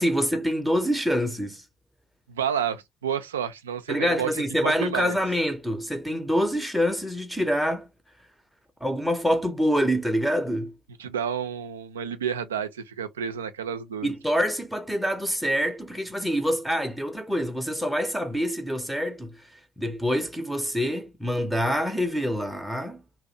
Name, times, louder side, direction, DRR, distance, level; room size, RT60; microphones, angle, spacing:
voice 1, 0.0-1.6 3.9-7.9 8.8-10.7 14.0-19.4 19.8-23.0, equal, ahead, 0.6 m, -26 dB
voice 2, 2.3-4.3 4.6-5.1 11.0-14.1, right 8 dB, 85° right, 0.3 m, -30 dB
2.5 x 2.0 x 2.6 m
figure-of-eight pair, 50°, 0 cm